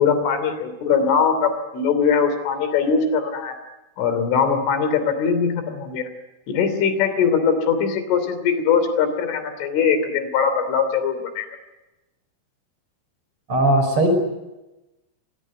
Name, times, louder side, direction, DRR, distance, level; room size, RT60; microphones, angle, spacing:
voice 1, 0.0-3.6 4.0-6.1 6.5-11.5, left 6 dB, 85° left, 10 dB, 5.5 m, -21 dB
voice 2, 13.5-14.1, right 1 dB, 30° right, 5 dB, 5.8 m, -18 dB
24.5 x 21.5 x 9.4 m, 1.0 s
omnidirectional pair, 5.4 m